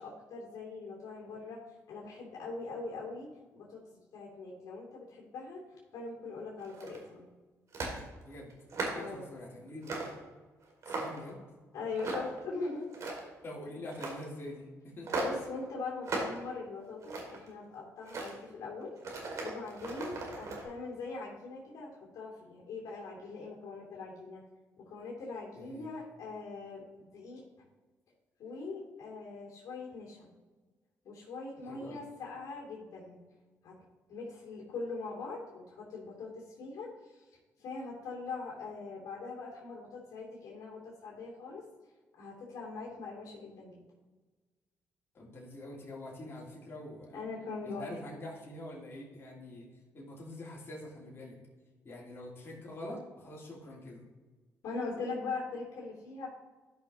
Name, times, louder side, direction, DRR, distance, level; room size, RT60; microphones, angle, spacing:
voice 1, 0.0-1.6 1.9-3.3 3.5-3.8 4.1-5.6 5.9-7.2 8.9-9.3 11.7-12.9 15.2-18.9 19.4-21.9 22.1-24.4 24.8-27.4 28.4-30.3 31.0-33.2 33.6-36.9 37.6-41.6 42.2-43.8 47.1-47.9 54.6-56.3, left 3 dB, 75° left, -3 dB, 2.6 m, -41 dB
sound 1, 6.6-7.1 7.7-8.0 8.5-9.1 9.8-10.2 10.6-11.3 12.0-12.4 12.8-13.4 13.9-14.2 15.1-15.4 16.0-16.4 16.8-17.5 18.0-18.3 19.0-20.6, right 2 dB, 60° right, 2.2 m, -37 dB
voice 2, 8.2-10.1 10.8-11.4 13.4-15.1 25.6-25.9 31.6-32.0 45.1-47.2 47.6-49.7 49.9-51.4 51.8-54.0, left 1 dB, 45° left, -4 dB, 2.9 m, -45 dB
12.5 x 5.9 x 2.8 m, 1.3 s
cardioid pair, 70°, 6 cm